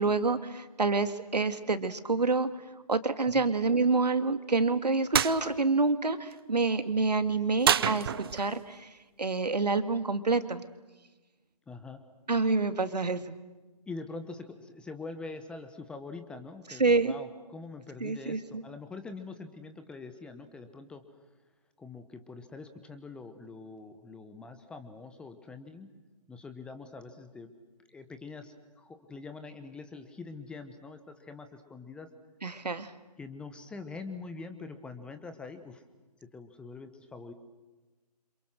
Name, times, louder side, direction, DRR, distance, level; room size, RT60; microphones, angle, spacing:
voice 1, 0.0-2.5 2.9-8.9 9.2-10.6 12.3-13.4 16.8-17.1 18.0-18.6 32.4-32.9, right 3 dB, 75° right, 11 dB, 2.1 m, -27 dB
sound 1, 5.1-5.4 7.6-8.6, right 9 dB, 35° right, 0.9 m, -26 dB
voice 2, 11.7-12.0 13.9-21.0 21.8-25.9 26.3-27.5 27.9-32.1 33.2-35.8 36.3-37.3, left 3 dB, 5° left, 9 dB, 1.0 m, -44 dB
29.0 x 27.0 x 6.4 m, 1.2 s
figure-of-eight pair, 145°, 21 cm